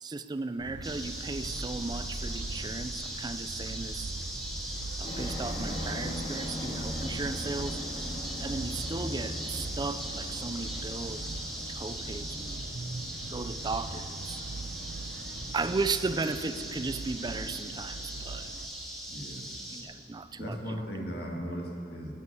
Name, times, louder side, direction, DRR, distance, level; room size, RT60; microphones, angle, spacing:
voice 1, 0.0-4.1 5.0-7.8 8.4-12.6 13.3-14.4 15.5-18.4 19.7-20.6, right 3 dB, 25° right, 11 dB, 0.4 m, -36 dB
sound 1, 0.6-18.7, right 2 dB, 80° right, 0.7 m, -41 dB
sound 2, 0.8-19.8, right 1 dB, ahead, 1.9 m, -40 dB
sound 3, 5.0-21.5, equal, 40° left, 1.9 m, -42 dB
voice 2, 19.1-19.5 20.4-22.1, equal, 60° left, -2 dB, 2.1 m, -37 dB
9.8 x 9.7 x 8.5 m, 2.6 s
head